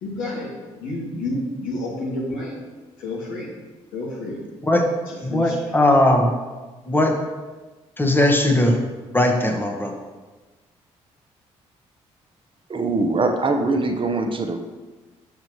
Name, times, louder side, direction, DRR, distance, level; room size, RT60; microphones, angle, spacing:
voice 1, 0.0-2.5 3.0-3.5 3.9-4.4 5.3-5.6, left 2 dB, 80° left, -4 dB, 2.1 m, -29 dB
voice 2, 5.2-6.3 6.9-7.1 8.0-8.8 9.1-10.0, left 1 dB, 15° left, 3 dB, 1.2 m, -18 dB
voice 3, 12.7-14.6, right 3 dB, 40° right, 5 dB, 0.8 m, -22 dB
7.5 x 6.5 x 3.1 m, 1.3 s
hypercardioid pair, 55°, 14 cm